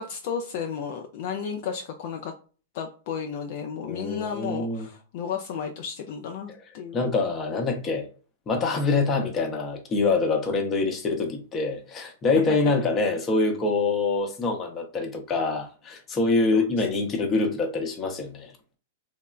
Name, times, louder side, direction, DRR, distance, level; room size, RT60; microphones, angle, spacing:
voice 1, 0.0-2.3 2.7-7.0 16.5-16.7, left 7 dB, 55° left, 0.3 m, -33 dB
voice 2, 3.8-4.9 6.9-8.1 8.5-18.5, left 3 dB, 25° left, 0.7 m, -25 dB
3.0 x 2.0 x 2.3 m
hypercardioid pair, 110°, 0 cm